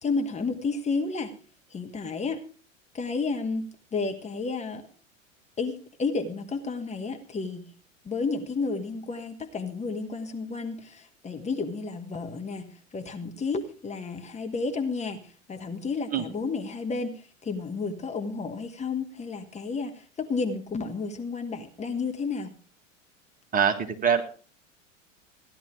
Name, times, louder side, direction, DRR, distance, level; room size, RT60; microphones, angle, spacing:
voice 1, 0.0-1.3 1.7-2.4 2.9-4.9 5.6-7.7 8.0-22.5, left 4 dB, 15° left, 5 dB, 1.4 m, -31 dB
voice 2, 23.5-24.2, right 7 dB, 20° right, 6 dB, 1.6 m, -23 dB
16.0 x 11.0 x 4.7 m, 0.39 s
figure-of-eight pair, 85°, 39 cm